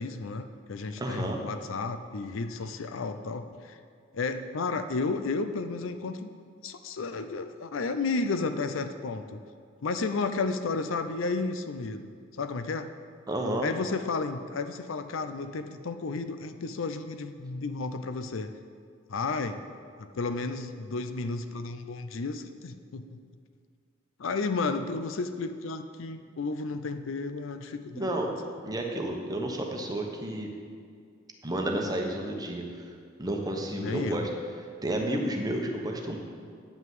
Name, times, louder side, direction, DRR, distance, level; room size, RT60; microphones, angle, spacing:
voice 1, 0.0-3.8 4.1-6.3 6.6-9.4 9.8-12.1 12.3-12.9 13.6-18.5 19.1-19.6 20.0-23.2 24.2-28.1 33.7-34.3, left 3 dB, 70° left, 9 dB, 0.6 m, -32 dB
voice 2, 1.0-1.4 13.3-13.7 27.9-28.3 28.6-30.5 31.4-32.6 33.2-34.3 34.8-36.2, right 1 dB, 20° right, 1 dB, 1.1 m, -31 dB
9.1 x 5.9 x 7.8 m, 2.2 s
head